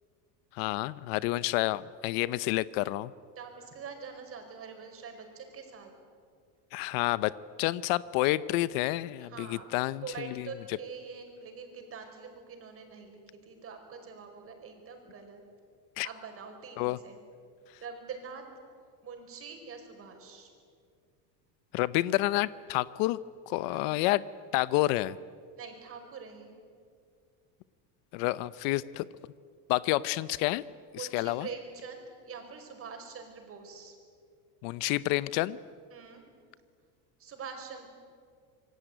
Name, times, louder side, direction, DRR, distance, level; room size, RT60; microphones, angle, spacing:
voice 1, 0.5-3.1 6.7-7.3 7.6-10.8 16.0-16.1 16.8-17.0 21.7-23.2 23.5-24.2 24.5-25.2 28.1-29.1 29.7-30.6 30.9-31.5 34.6-35.6, left 18 dB, 65° left, 17 dB, 0.8 m, -29 dB
voice 2, 3.4-5.9 9.2-9.7 10.0-15.4 16.0-17.2 17.8-18.4 19.0-20.5 23.7-24.0 25.6-26.5 30.9-33.9 35.9-36.2 37.2-37.9, right 5 dB, 30° right, 4 dB, 5.3 m, -44 dB
26.5 x 23.5 x 9.2 m, 2.1 s
cardioid pair, 155°, 44 cm